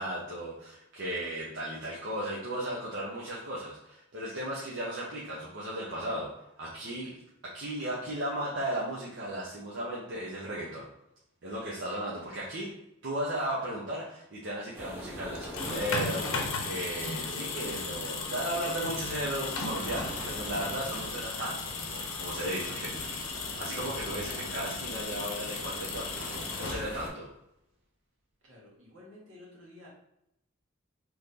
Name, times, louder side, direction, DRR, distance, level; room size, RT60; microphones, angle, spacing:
voice 1, 0.0-6.3 6.6-7.1 7.4-10.8 11.4-12.7 13.0-27.3, right 1 dB, 60° right, -6 dB, 0.8 m, -36 dB
sound 1, 14.4-23.2, left 2 dB, 40° left, 0.5 m, -50 dB
sound 2, 14.7-27.1, equal, 10° right, 0.6 m, -45 dB
sound 3, 15.3-27.3, left 4 dB, 85° left, 0.7 m, -36 dB
voice 2, 28.4-29.9, left 1 dB, 75° right, -4 dB, 1.4 m, -52 dB
3.1 x 2.6 x 3.7 m, 0.80 s
head